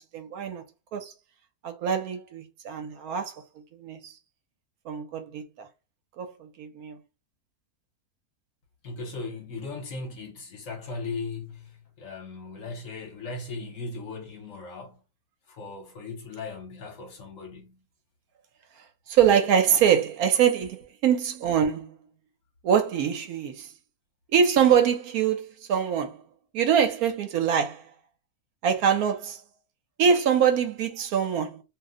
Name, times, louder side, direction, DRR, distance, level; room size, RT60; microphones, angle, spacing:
voice 1, 0.1-0.6 0.9-1.1 1.6-3.3 3.8-4.1 4.9-5.4 6.2-7.0 19.1-22.0 22.6-23.7 24.3-26.2 26.5-27.8 28.6-29.4 30.0-31.6, right 8 dB, 75° right, 1.1 m, -24 dB
voice 2, 8.8-15.0 15.5-17.8, left 3 dB, 60° left, 1.1 m, -38 dB
2.7 x 2.1 x 3.5 m
omnidirectional pair, 1.6 m